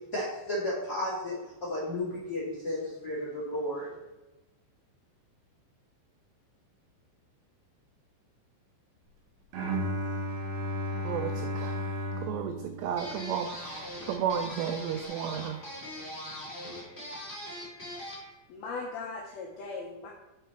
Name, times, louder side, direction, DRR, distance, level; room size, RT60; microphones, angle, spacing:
voice 1, 0.1-1.3 1.6-3.9, left 1 dB, 50° left, 1.1 m, -33 dB
Bowed string instrument, 9.5-13.7, equal, 75° right, 3.6 m, -34 dB
voice 2, 11.0-11.9 12.2-15.6, right 8 dB, 90° right, 2.4 m, -33 dB
sound 1, 13.0-18.3, equal, 30° left, 0.8 m, -41 dB
voice 3, 18.5-20.1, left 4 dB, 90° left, 2.1 m, -38 dB
6.3 x 5.6 x 4.3 m
omnidirectional pair, 5.4 m